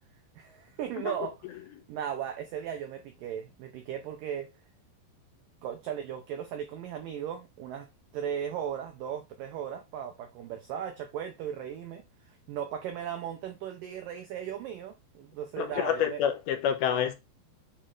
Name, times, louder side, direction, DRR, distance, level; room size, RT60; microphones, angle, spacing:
voice 1, 0.4-4.5 5.6-7.9 8.1-16.2, right 9 dB, 85° right, 1.9 m, -37 dB
voice 2, 15.6-17.1, left 9 dB, 75° left, 2.6 m, -28 dB
8.8 x 3.2 x 3.8 m
omnidirectional pair, 5.1 m